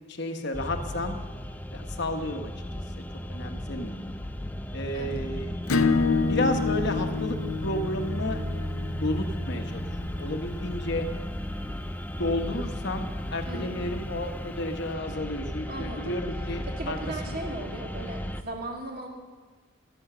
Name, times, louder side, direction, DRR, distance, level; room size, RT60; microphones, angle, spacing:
voice 1, 0.1-1.1 1.7-2.5 3.0-4.1 4.7-5.5 6.2-8.4 9.0-11.1 12.2-17.0 17.3-17.4, left 1 dB, 50° left, 6 dB, 1.1 m, -32 dB
sound 1, 0.5-18.4, equal, 10° left, 0.4 m, -35 dB
voice 2, 4.9-5.3 13.5-13.9 15.7-16.2 16.8-19.1, right 2 dB, 45° right, 0 dB, 2.3 m, -37 dB
Acoustic guitar / Strum, 5.7-10.9, left 4 dB, 80° left, 0.7 m, -28 dB
13.0 x 11.0 x 6.7 m, 1.4 s
head